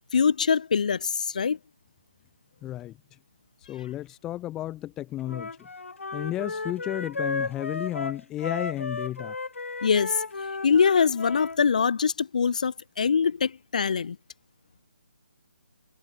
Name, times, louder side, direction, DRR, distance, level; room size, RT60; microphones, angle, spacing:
voice 1, 0.1-1.6 9.8-10.2 10.6-14.2, left 6 dB, 35° left, 2.6 m, -23 dB
voice 2, 2.6-3.0 3.7-5.5 6.1-9.4, left 14 dB, 5° left, 2.6 m, -32 dB
Wind instrument woodwind instrument, 5.2-11.6, left 3 dB, 70° left, 7.6 m, -34 dB
hypercardioid pair, 180°, 7 cm